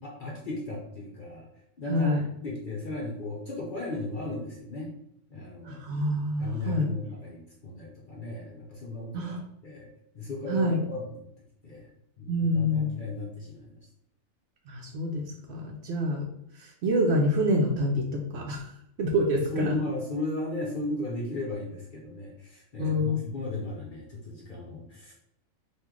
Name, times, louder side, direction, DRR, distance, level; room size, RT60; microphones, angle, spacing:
voice 1, 0.0-1.5 1.8-2.1 2.4-4.9 5.3-5.8 6.4-9.4 9.6-9.9 10.1-11.2 11.6-11.9 12.2-13.7 19.3-25.1, left 2 dB, 50° left, -3 dB, 0.6 m, -35 dB
voice 2, 1.9-2.2 5.6-6.9 9.1-9.4 10.5-10.8 12.3-13.0 14.7-16.2 16.5-18.7 19.0-19.7 22.8-23.2, equal, 65° right, 1 dB, 0.7 m, -27 dB
3.0 x 2.5 x 3.6 m, 0.74 s
omnidirectional pair, 1.4 m